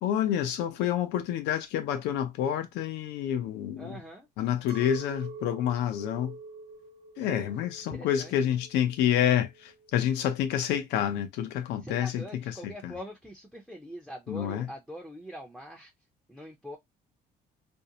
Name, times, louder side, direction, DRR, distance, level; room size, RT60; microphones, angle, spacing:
voice 1, 0.0-4.0 4.4-6.3 7.2-12.5 12.8-12.9 14.3-14.7, left 10 dB, 85° left, 0.6 m, -28 dB
voice 2, 3.8-4.3 7.2-7.6 7.9-8.6 11.8-15.9 16.3-16.8, equal, ahead, 0.5 m, -43 dB
Chink clink, 4.7-10.1, right 3 dB, 65° right, 0.7 m, -47 dB
2.6 x 2.0 x 2.7 m
cardioid pair, 110°, 17 cm